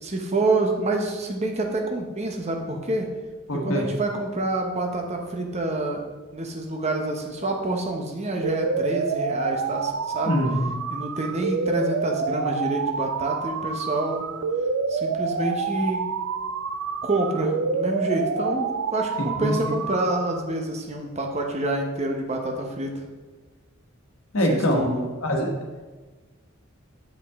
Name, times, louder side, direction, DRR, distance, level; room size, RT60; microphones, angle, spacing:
voice 1, 0.0-3.1 3.6-6.1 6.3-10.3 10.9-14.3 14.9-16.1 17.0-23.1 24.5-25.1, right 2 dB, 30° right, 3 dB, 0.9 m, -27 dB
voice 2, 3.5-3.9 10.2-10.7 19.2-19.5 24.3-24.8 25.2-25.5, equal, 75° left, 1 dB, 1.3 m, -23 dB
sound 1, 8.4-20.4, right 5 dB, 70° right, 0.4 m, -28 dB
7.6 x 5.4 x 3.6 m, 1.3 s
head